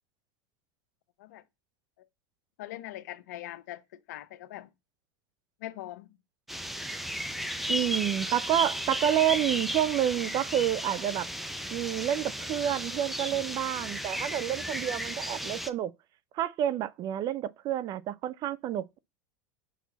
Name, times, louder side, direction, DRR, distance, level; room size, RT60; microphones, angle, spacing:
voice 1, 2.6-4.7 5.6-6.1, left 14 dB, 70° left, 0.7 m, -42 dB
sound 1, 6.5-15.7, equal, ahead, 0.7 m, -34 dB
voice 2, 7.7-11.3 11.7-15.9 16.3-19.0, right 11 dB, 45° right, 0.5 m, -29 dB
6.2 x 5.8 x 4.0 m
hypercardioid pair, 90°, 10 cm